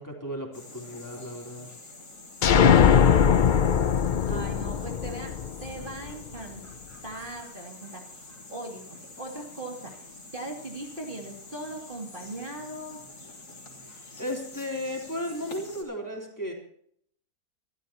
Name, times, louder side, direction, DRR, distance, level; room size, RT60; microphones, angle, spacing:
voice 1, 0.0-1.7 4.0-4.4 14.2-16.5, left 1 dB, 10° left, 0 dB, 3.7 m, -35 dB
sound 1, 0.5-15.8, left 2 dB, 90° left, 3.9 m, -47 dB
sound 2, 2.4-6.1, left 7 dB, 60° left, 0.5 m, -20 dB
voice 2, 4.2-6.6 7.0-9.9 10.3-13.0, right 1 dB, 30° right, 0 dB, 2.8 m, -39 dB
26.5 x 13.5 x 3.0 m, 0.67 s
omnidirectional pair, 1.7 m